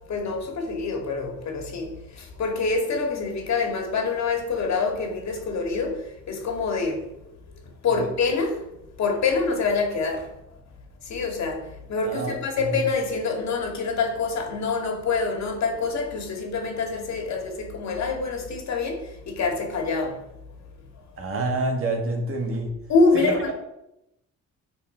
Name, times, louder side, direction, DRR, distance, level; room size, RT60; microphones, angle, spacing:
voice 1, 0.1-7.0 7.8-8.6 9.0-10.3 11.0-20.3 22.9-23.5, left 4 dB, 65° left, 2.2 m, -26 dB
voice 2, 12.0-12.4 12.6-12.8 21.2-22.7 23.1-23.5, right 2 dB, 45° right, 1.9 m, -27 dB
9.0 x 4.7 x 4.5 m
cardioid pair, 90°, 30 cm